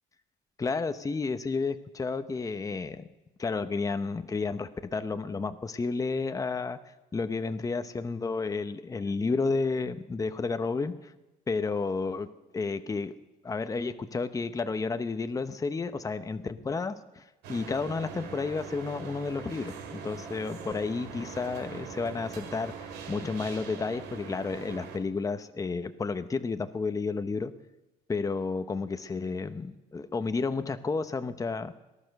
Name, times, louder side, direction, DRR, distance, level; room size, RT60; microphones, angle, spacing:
voice 1, 0.6-3.1 3.4-6.8 7.1-11.1 11.5-12.3 12.5-13.1 13.4-17.2 17.5-27.5 28.1-31.7, left 4 dB, 20° left, 10 dB, 0.8 m, -31 dB
sound 1, 17.4-25.0, right 6 dB, 90° right, 2.2 m, -42 dB
18.5 x 12.0 x 6.6 m, 1.0 s
cardioid pair, 110°, 17 cm